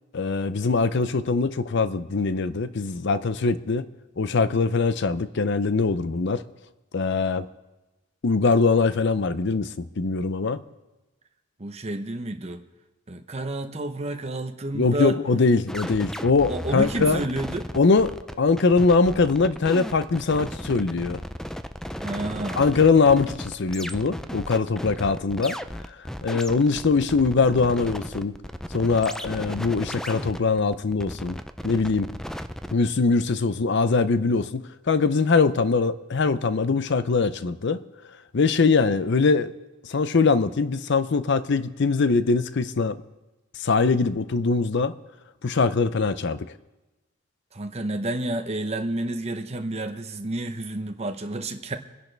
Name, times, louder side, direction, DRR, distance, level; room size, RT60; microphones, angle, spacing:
voice 1, 0.1-3.9 4.2-6.4 6.9-7.5 8.2-10.6 14.7-17.2 17.7-21.2 22.6-25.6 26.2-28.4 28.7-31.4 31.6-32.1 32.7-37.8 38.3-39.5 39.9-43.0 43.6-45.0 45.4-46.5, left 4 dB, 60° left, 13 dB, 0.6 m, -22 dB
voice 2, 11.6-12.6 13.1-15.2 16.5-17.7 22.0-22.6 47.5-51.8, right 1 dB, 30° right, 6 dB, 0.9 m, -30 dB
sound 1, 15.7-32.7, equal, ahead, 0.4 m, -35 dB
26.0 x 10.5 x 3.3 m, 1.1 s
head